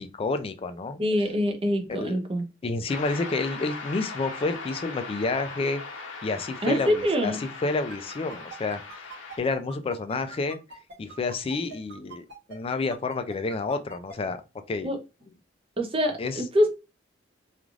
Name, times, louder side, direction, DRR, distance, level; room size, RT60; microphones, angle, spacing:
voice 1, 0.0-1.0 1.9-2.2 2.6-5.8 6.2-8.8 9.4-10.6 11.0-14.4 14.7-14.9 16.2-16.4, left 3 dB, 30° left, 0.3 m, -29 dB
voice 2, 1.0-2.4 6.6-7.4 14.8-15.0 15.8-16.7, equal, 30° right, 0.5 m, -25 dB
sound 1, 2.9-9.4, left 4 dB, 75° left, 0.7 m, -39 dB
sound 2, 7.9-14.1, right 3 dB, 60° right, 0.9 m, -43 dB
3.1 x 2.4 x 2.4 m
head